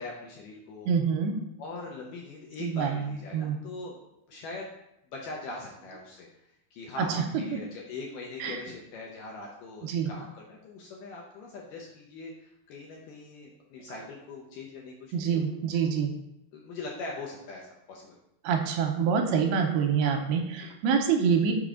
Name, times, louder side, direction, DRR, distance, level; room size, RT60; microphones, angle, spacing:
voice 1, 0.0-0.9 1.6-3.9 4.3-4.7 5.1-6.3 6.7-15.5 15.7-15.9 16.5-18.2 20.6-20.7, left 3 dB, 75° left, -2 dB, 2.1 m, -41 dB
voice 2, 0.9-1.4 2.6-3.6 7.0-7.1 7.5-7.6 8.4-8.6 9.8-10.1 15.1-16.1 18.4-21.5, right 6 dB, 85° right, 3 dB, 2.5 m, -26 dB
6.1 x 5.2 x 3.7 m, 0.82 s
omnidirectional pair, 4.6 m